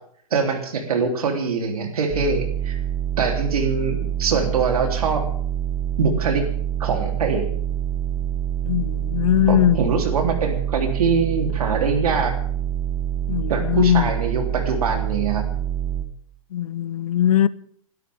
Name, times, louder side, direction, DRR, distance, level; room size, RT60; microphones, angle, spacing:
voice 1, 0.3-2.8 3.2-5.2 6.0-6.5 6.8-7.5 9.5-12.3 13.5-15.4, right 5 dB, 85° right, 3.5 m, -23 dB
sound 1, 2.1-16.0, right 10 dB, 25° right, 1.5 m, -26 dB
voice 2, 8.7-9.8 13.3-14.1 16.5-17.5, left 11 dB, 80° left, 0.7 m, -20 dB
28.5 x 12.5 x 3.7 m
hypercardioid pair, 150°, 18 cm